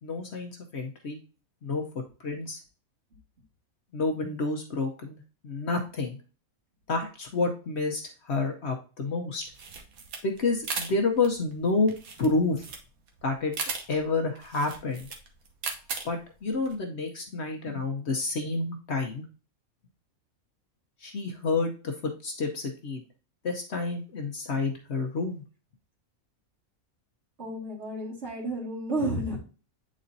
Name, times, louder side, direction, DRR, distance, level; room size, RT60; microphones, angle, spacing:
voice 1, 0.0-1.2 1.6-2.6 3.9-6.2 6.9-9.4 10.2-11.9 12.2-12.6 13.2-13.5 13.9-15.1 16.0-19.2 21.0-21.9 22.2-23.0 23.4-25.4, left 3 dB, 55° left, 3 dB, 1.0 m, -29 dB
sound 1, 9.4-16.7, right 4 dB, 75° right, 1.3 m, -38 dB
voice 2, 27.4-29.4, right 1 dB, 50° right, -3 dB, 2.2 m, -31 dB
8.6 x 4.2 x 2.6 m, 0.36 s
omnidirectional pair, 1.5 m